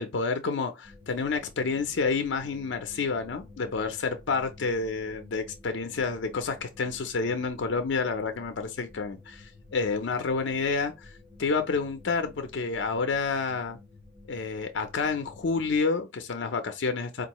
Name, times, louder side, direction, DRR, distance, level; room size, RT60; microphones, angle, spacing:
voice 1, 0.0-11.1 11.4-13.8 14.3-17.3, left 4 dB, 80° left, 0.5 m, -29 dB
sound 1, 0.8-15.8, left 2 dB, 15° right, 1.6 m, -52 dB
4.5 x 2.4 x 2.9 m
head